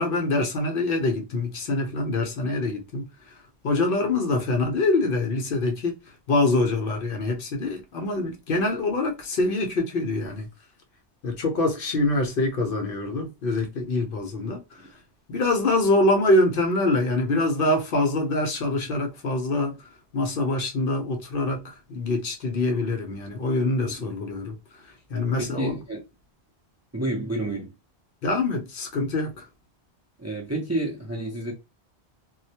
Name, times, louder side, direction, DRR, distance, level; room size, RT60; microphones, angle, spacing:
voice 1, 0.0-3.1 3.6-6.0 6.3-10.5 11.2-14.8 15.3-19.8 20.1-24.5 25.1-25.8 28.2-29.5, left 2 dB, 60° left, 0.7 m, -25 dB
voice 2, 25.4-26.0 26.9-27.7 30.2-31.5, right 1 dB, 20° right, 0.4 m, -30 dB
2.2 x 2.1 x 2.7 m
omnidirectional pair, 1.1 m